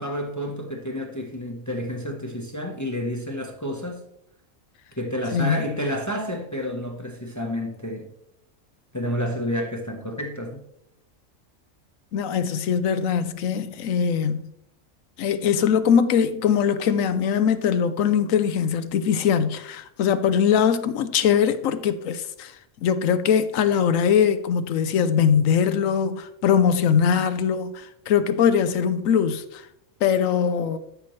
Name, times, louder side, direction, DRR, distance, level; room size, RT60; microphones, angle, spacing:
voice 1, 0.0-4.0 5.0-8.1 8.9-10.6, equal, 15° left, 0.9 m, -30 dB
voice 2, 12.1-14.5 15.2-22.5 22.8-29.6 30.0-30.8, left 7 dB, 80° left, 1.1 m, -21 dB
12.5 x 6.0 x 3.1 m
omnidirectional pair, 1.4 m